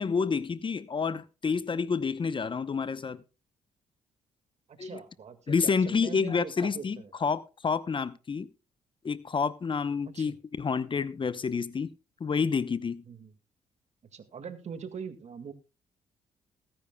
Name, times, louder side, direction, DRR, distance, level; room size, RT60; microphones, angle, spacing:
voice 1, 0.0-3.2 4.8-5.0 5.5-8.5 9.0-11.9 12.2-13.0, left 5 dB, 35° left, 0.8 m, -29 dB
voice 2, 4.7-7.1 10.1-10.4 13.1-13.3 14.1-15.5, right 6 dB, 55° right, 1.9 m, -42 dB
21.0 x 10.0 x 2.3 m
supercardioid pair, 60°, 14 cm